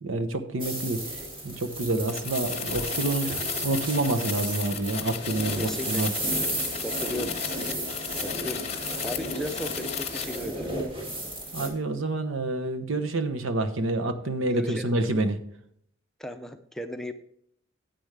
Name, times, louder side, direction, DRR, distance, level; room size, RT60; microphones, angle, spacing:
voice 1, 0.0-3.3 3.6-6.1 11.5-15.4, right 2 dB, 80° right, 9 dB, 0.9 m, -28 dB
sound 1, 0.6-11.7, right 1 dB, 25° right, 2.0 m, -33 dB
sound 2, 2.1-10.5, left 8 dB, 30° left, 0.8 m, -35 dB
voice 2, 5.6-6.0 6.8-7.4 7.7-7.8 8.2-10.7 14.5-14.9 16.2-17.1, left 1 dB, ahead, 6 dB, 0.5 m, -36 dB
10.5 x 7.8 x 3.3 m, 0.68 s
head